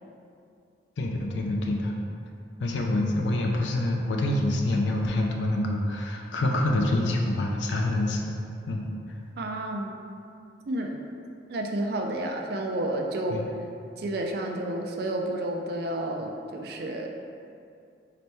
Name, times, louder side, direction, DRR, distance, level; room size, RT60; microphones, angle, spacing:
voice 1, 1.0-1.9 2.6-8.4 8.7-8.8 13.3-13.4, left 1 dB, 75° left, 1 dB, 0.4 m, -26 dB
voice 2, 9.4-10.0 10.7-11.0 11.5-13.4 14.0-17.1, right 1 dB, 60° right, 2 dB, 0.4 m, -30 dB
4.1 x 2.9 x 3.4 m, 2.5 s
head